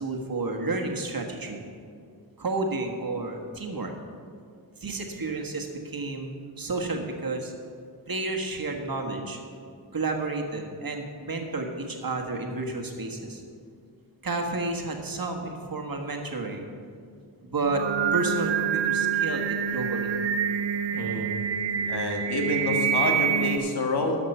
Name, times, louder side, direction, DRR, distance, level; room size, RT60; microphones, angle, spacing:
voice 1, 0.0-1.6 2.4-3.9 4.8-6.3 6.6-7.5 8.1-9.4 9.9-13.4 14.2-16.7 17.4-17.8 18.1-20.1, right 3 dB, 55° right, 3 dB, 1.6 m, -31 dB
Singing, 17.6-23.6, right 7 dB, 90° right, 0.6 m, -26 dB
voice 2, 20.9-21.3 21.9-24.2, left 2 dB, 65° left, 1 dB, 1.7 m, -28 dB
12.5 x 5.9 x 5.5 m, 2.2 s
cardioid pair, 45°, 42 cm